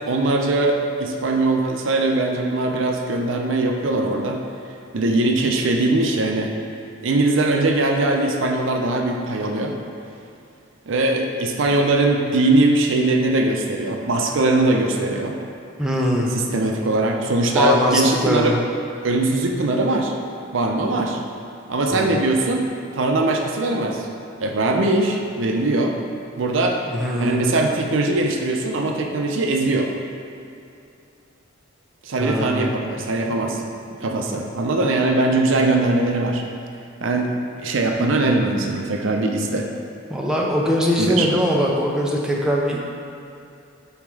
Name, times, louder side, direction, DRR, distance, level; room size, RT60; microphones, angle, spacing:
voice 1, 0.1-4.4 4.9-6.5 7.0-9.8 10.9-15.4 16.3-18.5 19.0-20.1 20.5-21.2 21.7-24.1 24.4-26.0 26.4-26.8 27.2-29.9 32.0-33.7 34.0-36.4 37.0-37.4 37.6-39.7 41.0-41.3, right 2 dB, 65° right, 2 dB, 0.6 m, -21 dB
voice 2, 15.8-16.4 17.5-18.6 21.9-22.2 26.9-27.4 32.2-32.8 40.1-42.8, equal, 5° right, -3 dB, 0.5 m, -21 dB
5.7 x 4.3 x 4.6 m, 2.6 s
head